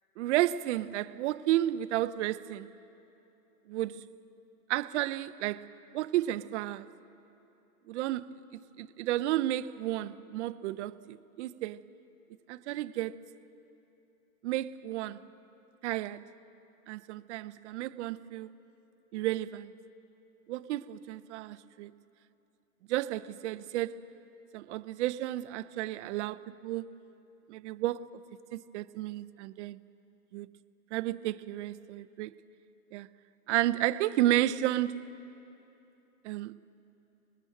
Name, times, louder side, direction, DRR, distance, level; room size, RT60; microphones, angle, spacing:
voice 1, 0.2-2.7 3.7-4.1 4.7-6.9 7.9-11.8 12.5-13.1 14.4-15.2 15.8-16.2 16.9-18.5 19.1-19.7 20.5-21.9 22.9-24.0 24.5-27.0 27.5-28.2 28.5-29.8 30.3-30.5 30.9-32.3 32.9-33.1 33.5-35.0 36.2-36.6, right 14 dB, 50° right, 0.7 m, -32 dB
26.5 x 20.5 x 7.8 m
hypercardioid pair, 115°, 45 cm